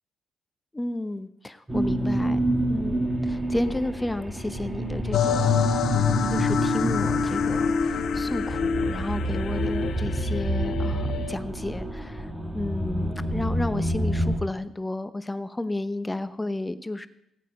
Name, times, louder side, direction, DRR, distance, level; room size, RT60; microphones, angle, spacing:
voice 1, 0.7-2.4 2.7-5.7 5.9-17.1, left 2 dB, 15° left, 12 dB, 0.8 m, -32 dB
sound 1, 1.7-14.4, right 1 dB, 10° right, 1.8 m, -28 dB
sound 2, 5.1-11.4, left 7 dB, 70° left, 1.0 m, -26 dB
16.5 x 9.1 x 5.2 m, 0.81 s
cardioid pair, 90°, 0 cm